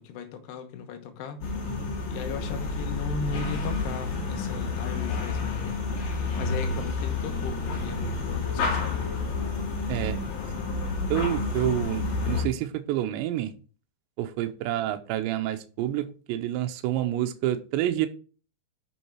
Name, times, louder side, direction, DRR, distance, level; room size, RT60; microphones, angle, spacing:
voice 1, 0.0-1.4 2.1-5.8 6.4-9.1, left 5 dB, 75° left, 2.9 m, -37 dB
sound 1, 1.4-12.4, left 4 dB, 55° left, 3.8 m, -30 dB
voice 2, 11.1-13.5 14.2-18.1, right 12 dB, 80° right, 2.9 m, -28 dB
8.4 x 6.5 x 4.6 m
omnidirectional pair, 5.4 m